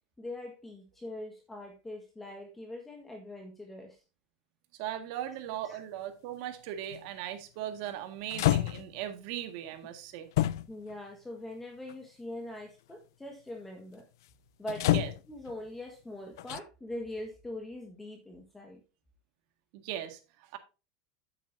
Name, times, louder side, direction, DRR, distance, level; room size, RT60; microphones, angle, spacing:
voice 1, 0.2-4.0 5.6-5.8 10.7-14.0 14.6-18.8, left 1 dB, 10° left, 1.4 m, -42 dB
voice 2, 4.7-10.3 14.9-15.1 19.7-20.6, right 11 dB, 60° right, 1.7 m, -38 dB
sound 1, 6.9-7.1 7.9-8.0 8.3-9.1 10.4-10.9 11.9-12.0 14.7-15.5 16.4-16.6, left 15 dB, 80° left, 0.4 m, -28 dB
9.3 x 8.5 x 2.6 m
supercardioid pair, 140°, 2 cm